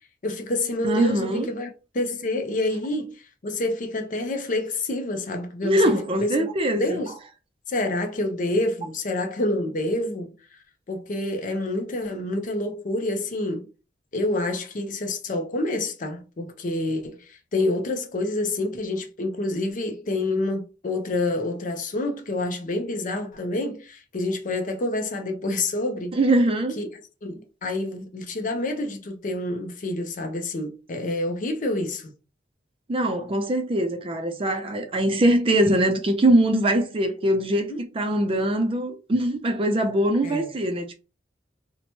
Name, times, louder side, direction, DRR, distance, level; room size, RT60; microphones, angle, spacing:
voice 1, 0.2-1.7 1.9-5.9 6.2-6.5 6.8-7.1 7.7-10.3 10.9-13.7 14.1-26.2 26.8-26.9 27.2-32.1 37.7-37.8 40.2-40.5, left 2 dB, 45° left, 0.5 m, -28 dB
voice 2, 0.8-1.5 5.6-7.0 26.1-26.8 32.9-40.9, right 1 dB, 30° right, 0.4 m, -22 dB
2.9 x 2.1 x 2.8 m
head